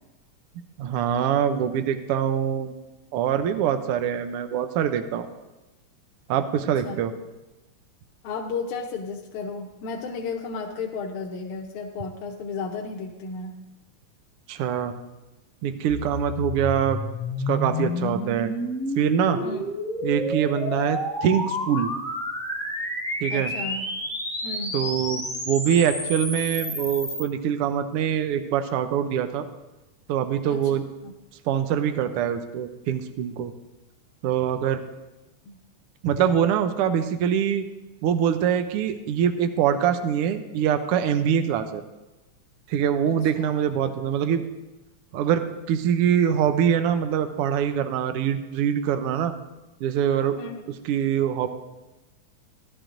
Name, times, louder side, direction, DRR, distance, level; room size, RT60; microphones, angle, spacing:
voice 1, 0.8-2.8 3.1-5.3 6.3-7.1 14.5-14.9 15.6-17.0 17.5-18.5 19.0-19.4 20.0-21.9 23.2-23.5 24.7-29.5 30.1-30.8 31.4-33.5 34.2-34.8 36.0-37.7 38.0-41.8 42.7-44.4 45.1-49.3 49.8-50.4 50.8-51.5, right 9 dB, 90° right, 8 dB, 1.2 m, -24 dB
voice 2, 8.2-13.5 19.4-19.6 23.3-23.8 24.4-24.7 30.5-30.6 31.0-31.1 35.5-35.6 43.0-43.2 50.4-50.6, left 4 dB, 85° left, 0 dB, 2.3 m, -33 dB
sound 1, 15.9-27.2, left 1 dB, 5° left, 0.4 m, -30 dB
16.5 x 12.0 x 2.6 m, 1.0 s
omnidirectional pair, 3.3 m